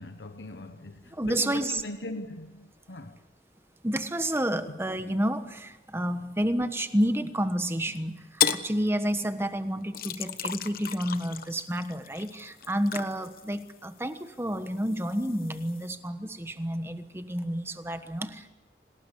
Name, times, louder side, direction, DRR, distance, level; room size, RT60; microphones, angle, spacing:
voice 1, 0.0-3.2 4.6-4.7, left 2 dB, 85° left, 1.1 m, -40 dB
voice 2, 1.1-1.8 3.8-18.5, equal, 15° right, 1.2 m, -30 dB
sound 1, 8.4-8.7 9.9-14.2 14.6-15.9, left 9 dB, 55° left, 1.1 m, -33 dB
27.0 x 19.5 x 8.4 m
head